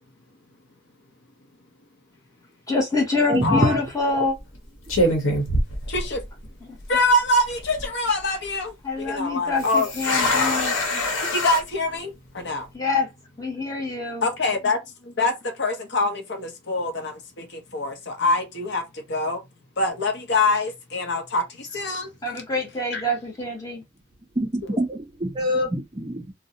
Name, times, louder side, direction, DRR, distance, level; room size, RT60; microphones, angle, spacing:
voice 1, 2.7-4.3 6.6-6.8 8.8-10.8 12.7-13.1 13.4-14.3 22.2-23.8, left 3 dB, 15° left, 0.7 m, -26 dB
sound 1, 3.3-3.6 4.4-4.6 4.9-6.5 6.8-6.9 7.5-7.9 9.6-11.6, left 1 dB, 75° left, 1.0 m, -24 dB
voice 2, 3.3-3.8 24.4-26.3, equal, 25° right, 0.4 m, -25 dB
voice 3, 5.9-6.2 6.9-8.7 9.1-9.9 11.4-12.1 12.4-12.6 14.2-14.8 15.2-15.3 15.6-17.1 17.7-18.8 19.1-19.4 19.8-21.4 21.7-22.1 22.9-23.0, left 2 dB, 55° left, 0.7 m, -24 dB
2.6 x 2.0 x 2.7 m
head